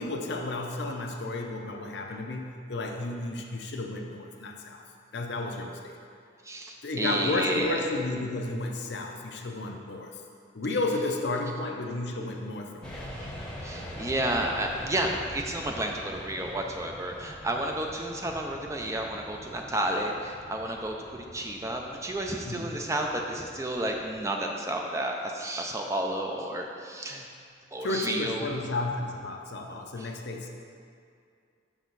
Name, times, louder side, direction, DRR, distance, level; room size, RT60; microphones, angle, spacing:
voice 1, 0.0-4.8 5.1-6.0 6.8-10.2 10.5-13.1 22.4-22.8 27.8-30.6, left 2 dB, 60° left, 2 dB, 0.6 m, -32 dB
voice 2, 6.5-7.8 13.6-27.3 27.7-28.5 30.0-30.1, right 1 dB, 15° right, 2 dB, 0.3 m, -31 dB
sound 1, 12.8-24.3, equal, 5° left, 0.8 m, -44 dB
6.2 x 5.5 x 3.9 m, 2.3 s
head